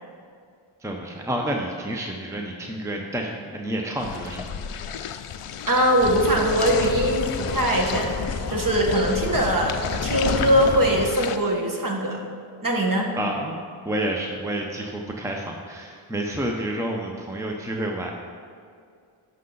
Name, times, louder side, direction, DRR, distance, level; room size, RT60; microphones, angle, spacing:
voice 1, 0.8-5.0 13.2-13.6 13.8-18.1, right 1 dB, 5° right, 0 dB, 0.7 m, -29 dB
sound 1, 4.0-11.4, left 8 dB, 85° left, 0.6 m, -35 dB
voice 2, 5.7-12.2 12.6-13.1, right 1 dB, 40° right, -1 dB, 1.6 m, -22 dB
sound 2, 6.0-11.1, left 5 dB, 35° left, 0.4 m, -30 dB
11.5 x 6.5 x 4.0 m, 2.3 s
wide cardioid pair, 75°, 50 cm